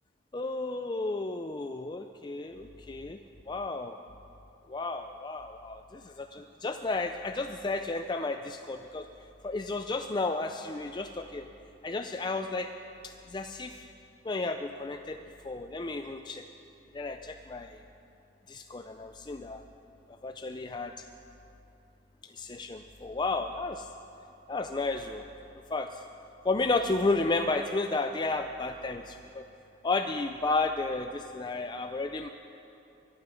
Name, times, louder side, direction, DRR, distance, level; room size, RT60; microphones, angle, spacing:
voice 1, 0.3-3.2 3.5-4.0 4.7-9.0 9.4-11.5 11.8-12.7 13.0-13.9 14.2-16.5 16.9-17.8 18.5-19.6 20.2-21.0 22.3-23.9 24.5-25.3 25.7-26.0 26.4-29.4 29.8-32.3, left 3 dB, 20° left, 6 dB, 0.4 m, -32 dB
23.5 x 9.6 x 6.2 m, 2.8 s
head